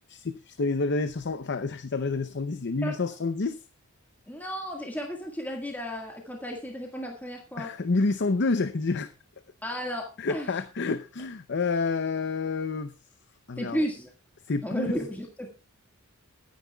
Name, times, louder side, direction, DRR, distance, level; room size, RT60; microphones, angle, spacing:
voice 1, 0.1-3.6 7.6-9.1 10.2-12.9 13.5-13.9 14.5-15.0, left 3 dB, 55° left, 10 dB, 0.7 m, -28 dB
voice 2, 4.3-7.7 9.6-10.5 13.6-14.1 14.6-15.5, equal, 10° left, 0 dB, 1.7 m, -33 dB
22.0 x 9.4 x 2.3 m, 0.32 s
head